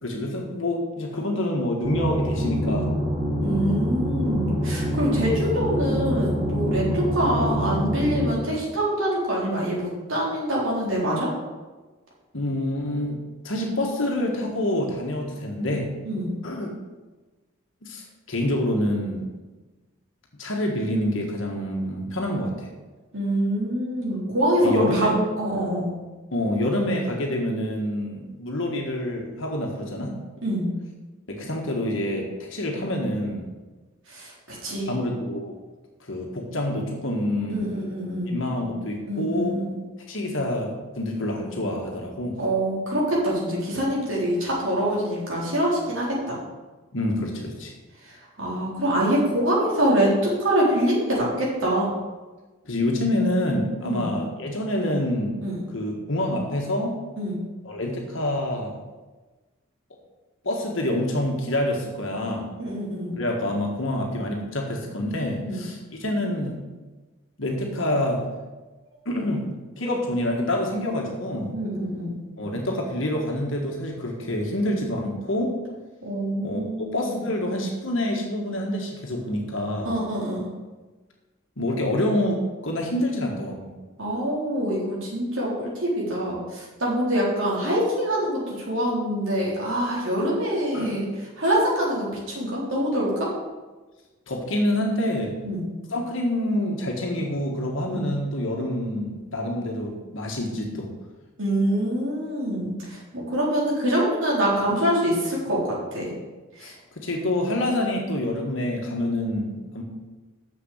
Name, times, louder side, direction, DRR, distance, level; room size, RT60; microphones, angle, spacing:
voice 1, 0.0-2.9 12.3-15.9 16.4-16.7 17.8-19.3 20.4-22.7 24.6-25.1 26.3-30.2 31.3-33.5 34.9-35.6 36.0-37.7 38.3-39.6 40.1-42.4 46.9-47.7 52.6-55.4 55.7-57.0 57.6-58.8 60.4-62.5 63.2-66.6 67.4-68.3 69.0-69.5 69.8-71.5 72.4-75.6 76.4-79.9 81.6-83.7 90.7-91.0 94.3-95.3 95.9-100.9 106.6-109.8, left 1 dB, 60° left, 0 dB, 1.6 m, -27 dB
sound 1, 1.8-8.3, equal, 30° right, 3.4 m, -25 dB
voice 2, 3.4-11.3 16.0-16.3 23.1-25.9 30.4-30.7 34.1-35.0 37.5-38.4 39.1-39.8 42.4-46.4 48.0-51.9 53.8-54.1 55.4-55.6 57.2-57.4 62.6-63.2 65.4-65.7 71.5-72.2 76.0-77.2 79.8-80.5 84.0-91.1 91.4-93.3 95.4-95.7 97.9-98.0 101.4-105.6 105.9-106.1 106.6-106.8, right 1 dB, 65° right, -5 dB, 4.0 m, -25 dB
7.0 x 6.8 x 8.0 m, 1.2 s
head